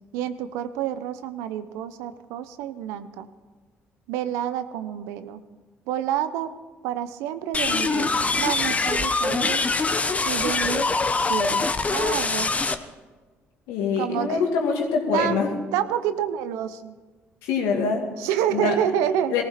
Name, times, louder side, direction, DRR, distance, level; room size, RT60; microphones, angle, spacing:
voice 1, 0.1-3.3 4.1-5.4 5.9-6.5 6.8-9.6 10.2-10.9 11.2-12.5 14.0-14.4 15.1-15.4 15.7-16.9 18.2-19.3, right 10 dB, 90° right, 12 dB, 0.8 m, -28 dB
sound 1, 7.5-12.8, left 3 dB, 25° left, 1.0 m, -23 dB
voice 2, 13.7-15.5 17.4-18.0 18.5-18.8 19.3-19.4, left 5 dB, 90° left, 2 dB, 2.5 m, -24 dB
18.0 x 15.0 x 4.4 m, 1.4 s
supercardioid pair, 75°, 5 cm